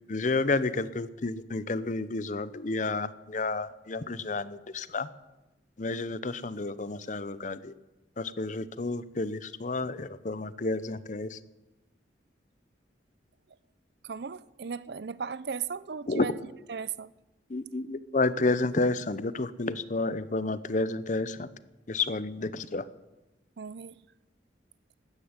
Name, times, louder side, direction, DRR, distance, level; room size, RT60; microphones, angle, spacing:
voice 1, 0.1-5.1 5.8-7.7 8.2-11.4 16.1-16.3 17.5-21.5 21.9-22.8, left 3 dB, 45° left, 0.7 m, -30 dB
voice 2, 14.0-16.4 16.7-17.1 23.6-24.0, right 6 dB, 60° right, 0.5 m, -36 dB
13.0 x 10.0 x 9.6 m
head